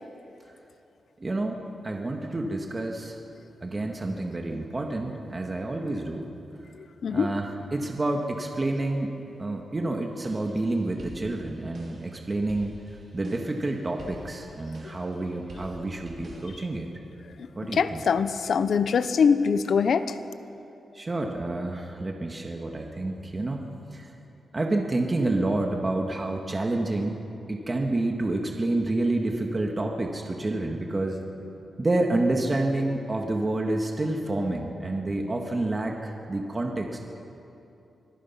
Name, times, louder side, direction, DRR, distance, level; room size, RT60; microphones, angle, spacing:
voice 1, 1.2-3.2 3.6-6.3 7.1-12.7 13.1-16.9 17.6-18.0 20.9-23.6 23.9-24.1 24.5-27.2 27.5-31.2 31.8-37.0, right 2 dB, 25° right, 2 dB, 1.7 m, -29 dB
voice 2, 6.8-7.3 17.6-20.2, left 6 dB, 70° left, 12 dB, 0.8 m, -23 dB
sound 1, 10.1-16.5, right 1 dB, 50° right, 4.7 m, -48 dB
25.0 x 19.5 x 5.8 m, 2.8 s
wide cardioid pair, 115°, 0 cm